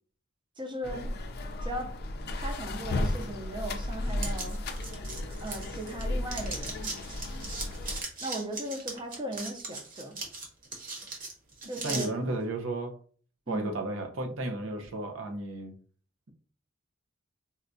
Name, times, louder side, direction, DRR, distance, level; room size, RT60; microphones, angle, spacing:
voice 1, 0.6-1.2 1.6-2.0 2.3-4.6 5.4-6.9 8.2-10.1 11.7-12.1 13.5-13.7, right 1 dB, 25° right, 0.5 m, -37 dB
sound 1, 0.8-8.0, left 1 dB, 50° left, 0.4 m, -34 dB
sound 2, 4.2-6.0 6.3-12.1, right 3 dB, 45° right, 1.0 m, -38 dB
voice 2, 11.6-13.0 13.5-15.8, right 2 dB, 75° right, 0.7 m, -33 dB
4.1 x 2.2 x 2.6 m
head